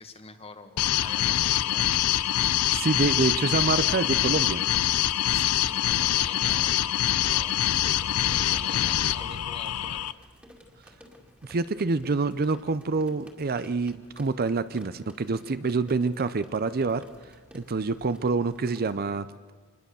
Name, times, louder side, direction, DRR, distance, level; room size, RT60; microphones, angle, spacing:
voice 1, 0.0-1.9 5.1-7.5 7.8-10.0, left 4 dB, 25° left, 8 dB, 1.6 m, -45 dB
sound 1, 0.8-10.1, left 12 dB, 80° left, 0.6 m, -25 dB
sound 2, 0.8-18.9, equal, 5° right, 2.3 m, -54 dB
voice 2, 2.7-4.6 11.4-17.0 17.5-19.3, right 4 dB, 45° right, 14 dB, 0.6 m, -27 dB
25.5 x 20.5 x 7.0 m, 1.5 s
head